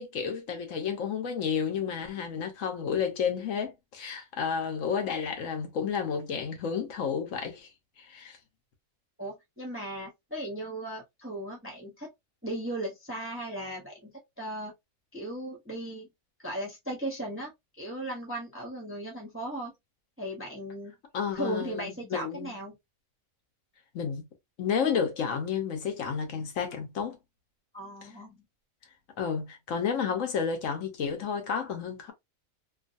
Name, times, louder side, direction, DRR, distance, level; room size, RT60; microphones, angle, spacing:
voice 1, 0.0-7.7 8.0-8.4 21.1-22.5 23.9-24.2 24.6-27.2 28.0-28.1 29.2-32.1, left 6 dB, 70° left, 1.1 m, -31 dB
voice 2, 9.2-12.1 12.4-14.7 15.1-16.1 16.4-17.5 17.8-19.7 20.2-20.9 21.3-22.8 27.7-28.4, right 1 dB, 15° right, 0.6 m, -37 dB
2.6 x 2.4 x 2.5 m
omnidirectional pair, 1.5 m